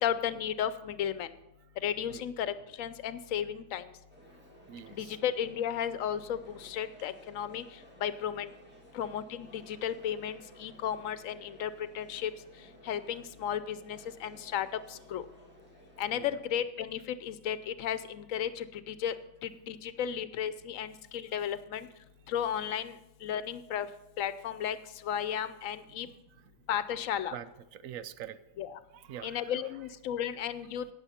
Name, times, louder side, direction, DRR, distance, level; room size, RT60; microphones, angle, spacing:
voice 1, 0.0-1.3 1.8-3.9 4.9-7.6 8.0-8.5 8.9-11.7 11.9-12.3 12.8-15.2 16.0-19.1 19.4-21.9 22.3-22.9 23.2-23.9 24.2-24.8 25.0-26.1 26.7-27.4 28.6-28.8 29.2-30.9, left 9 dB, 80° left, 13 dB, 1.0 m, -34 dB
sound 1, 4.1-16.3, right 1 dB, 10° right, 2.0 m, -56 dB
voice 2, 4.7-5.2 16.1-16.4 26.0-26.5 27.3-28.4 28.9-29.5, right 10 dB, 85° right, 14 dB, 1.0 m, -45 dB
17.0 x 6.7 x 4.2 m, 0.92 s
omnidirectional pair, 1.4 m